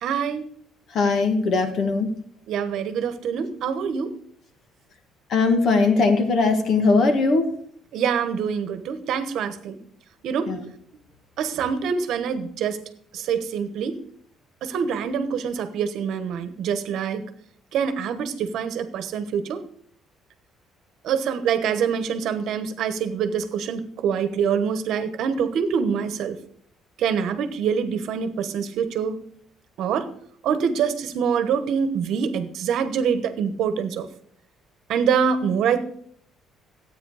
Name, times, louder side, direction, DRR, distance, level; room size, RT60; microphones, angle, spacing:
voice 1, 0.0-0.5 2.5-4.1 7.9-9.8 10.2-10.5 11.4-12.8 13.1-14.0 14.6-17.3 17.7-19.6 21.0-26.4 27.0-29.2 29.8-30.1 30.4-34.1 34.9-35.8, right 7 dB, 65° right, 10 dB, 1.1 m, -25 dB
voice 2, 0.9-2.1 5.3-7.4 10.5-10.6, left 3 dB, 50° left, 6 dB, 1.7 m, -20 dB
13.0 x 9.0 x 4.9 m, 0.63 s
cardioid pair, 150°, 0 cm